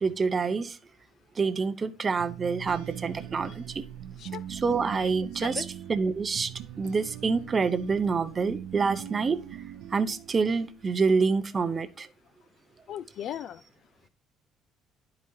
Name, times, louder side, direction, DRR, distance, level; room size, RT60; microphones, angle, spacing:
voice 1, 0.0-0.8 1.4-3.8 4.5-6.5 6.8-9.4 9.9-12.1, right 4 dB, 25° right, 0.6 m, -27 dB
sound 1, 2.2-10.9, right 10 dB, 80° right, 0.5 m, -41 dB
voice 2, 12.9-13.6, left 10 dB, 50° left, 0.3 m, -37 dB
11.0 x 4.9 x 2.7 m
cardioid pair, 160°, 0 cm